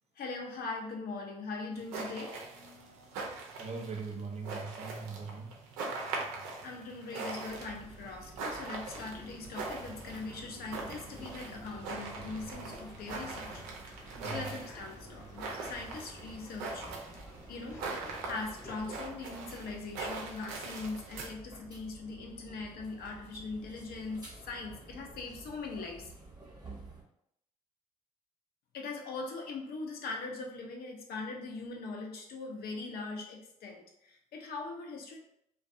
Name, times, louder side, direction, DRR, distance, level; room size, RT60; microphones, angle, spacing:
voice 1, 0.2-2.4 6.6-13.6 13.9-17.2 17.5-17.8 18.2-26.1 28.7-35.2, left 3 dB, 60° left, 2 dB, 0.6 m, -41 dB
sound 1, 1.7-21.3, right 3 dB, 85° right, 0.5 m, -42 dB
voice 2, 3.6-5.5 14.1-14.5, right 4 dB, 40° right, 3 dB, 0.6 m, -40 dB
sound 2, 7.5-27.0, right 2 dB, 20° right, 0.9 m, -53 dB
Male speech man speaking / Chatter / Rattle, 8.9-19.0, left 1 dB, 15° left, 0.6 m, -53 dB
2.6 x 2.3 x 2.4 m, 0.78 s
hypercardioid pair, 55°, 18 cm